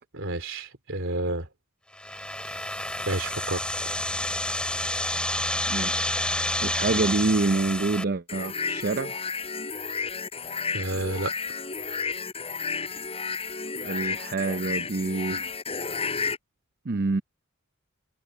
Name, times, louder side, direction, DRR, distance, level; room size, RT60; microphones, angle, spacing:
voice 1, 0.1-1.5 3.0-3.6 10.7-11.3, right 2 dB, 65° right, 3.3 m, -30 dB
sound 1, 1.9-8.0, left 1 dB, 5° left, 2.9 m, -29 dB
voice 2, 5.6-9.1 13.8-15.5 16.8-17.2, right 3 dB, 50° right, 0.6 m, -27 dB
sound 2, 8.3-16.4, left 5 dB, 30° left, 4.9 m, -32 dB
head